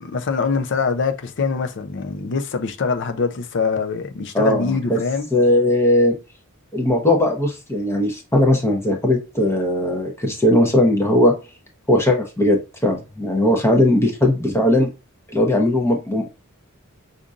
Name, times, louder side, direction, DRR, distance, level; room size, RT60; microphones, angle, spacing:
voice 1, 0.0-5.3, left 5 dB, 55° left, 0.5 m, -23 dB
voice 2, 4.3-5.0 5.3-6.2 6.7-11.3 11.9-14.9 15.3-16.3, left 1 dB, 10° left, 0.7 m, -18 dB
5.1 x 2.5 x 2.4 m
head